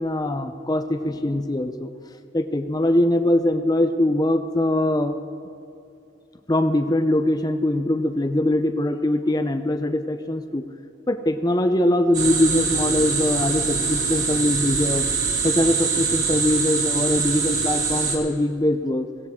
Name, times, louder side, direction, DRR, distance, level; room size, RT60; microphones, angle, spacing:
voice 1, 0.0-1.9 2.3-5.2 6.5-10.6 11.1-15.1 15.4-19.1, left 1 dB, 20° left, 8 dB, 0.6 m, -22 dB
sound 1, 12.1-18.2, right 5 dB, 35° right, 2.8 m, -24 dB
17.0 x 16.5 x 3.7 m, 2.7 s
head